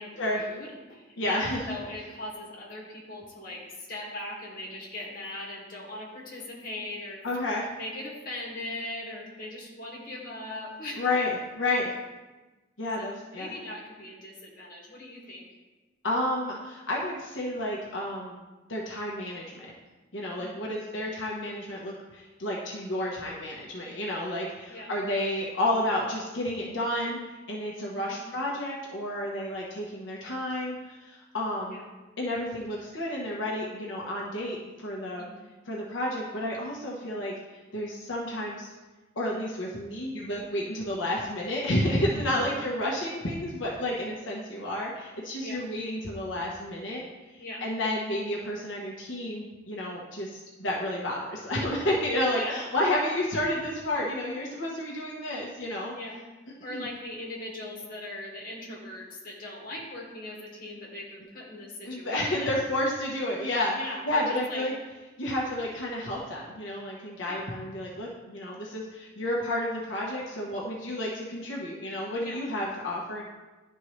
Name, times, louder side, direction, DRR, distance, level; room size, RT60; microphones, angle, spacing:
voice 1, 0.0-7.2 7.8-11.1 13.0-15.5 20.4-20.8 24.7-24.9 27.8-28.2 31.7-31.8 35.2-35.5 42.1-42.6 45.4-45.6 47.4-47.6 52.3-52.6 55.9-56.2 56.6-62.5 63.7-64.6 67.3-67.4 72.2-72.4, left 1 dB, 50° left, -4 dB, 2.0 m, -40 dB
voice 2, 1.2-1.7 7.2-7.7 11.0-11.9 12.8-13.5 16.0-18.4 18.7-19.7 20.1-27.2 27.5-31.8 32.2-35.2 35.7-38.7 39.1-47.0 47.3-55.9 56.7-56.9 61.8-63.8 64.0-64.7 65.2-73.2, left 1 dB, 85° left, -4 dB, 1.1 m, -31 dB
11.0 x 4.5 x 3.2 m, 1.2 s
head